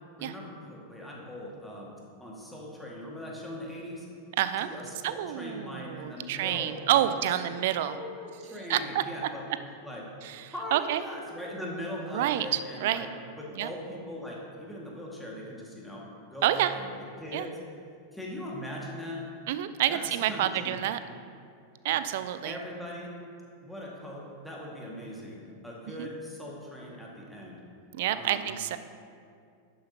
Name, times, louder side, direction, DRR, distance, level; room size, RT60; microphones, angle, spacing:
voice 1, 0.2-1.9 2.2-4.1 4.6-9.5 9.8-10.1 10.5-13.1 13.4-16.9 17.2-17.6 18.1-19.2 19.9-20.8 21.9-22.0 22.4-23.1 23.6-25.4 25.6-27.6 28.1-28.4, left 1 dB, ahead, -4 dB, 1.9 m, -40 dB
voice 2, 4.4-4.7 5.0-8.0 8.7-9.0 10.2-11.0 12.1-13.1 13.6-13.7 16.4-16.7 17.3-17.5 19.5-21.0 21.8-22.5 26.0-26.1 27.9-28.8, right 12 dB, 55° right, 12 dB, 0.4 m, -28 dB
11.5 x 9.3 x 2.9 m, 2.3 s
figure-of-eight pair, 90°, 0 cm